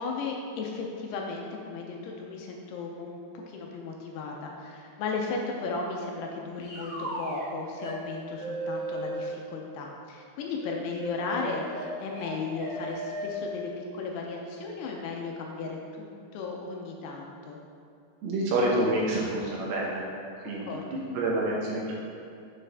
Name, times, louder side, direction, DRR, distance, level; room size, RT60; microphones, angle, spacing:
voice 1, 0.0-17.6 20.7-21.0, left 4 dB, 80° left, 0 dB, 2.6 m, -35 dB
sound 1, 6.6-7.5 7.8-8.0 8.3-9.3 10.6-13.3, right 1 dB, 55° left, 1.8 m, -36 dB
voice 2, 18.2-20.0 20.4-21.9, right 1 dB, 75° right, -4 dB, 2.6 m, -28 dB
7.7 x 6.1 x 3.4 m, 2.5 s
omnidirectional pair, 4.9 m